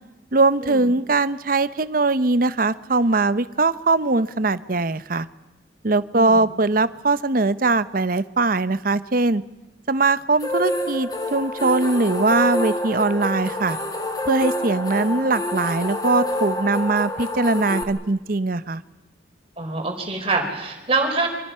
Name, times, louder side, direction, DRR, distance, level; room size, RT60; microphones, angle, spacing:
voice 1, 0.3-5.3 5.8-9.4 9.9-13.8 14.3-18.8, right 3 dB, 50° right, 14 dB, 0.8 m, -21 dB
voice 2, 6.1-6.4 19.6-21.3, right 3 dB, 30° right, 2 dB, 4.4 m, -25 dB
sound 1, 10.4-17.8, left 1 dB, 20° left, 2.1 m, -27 dB
27.5 x 24.5 x 5.7 m, 1.1 s
head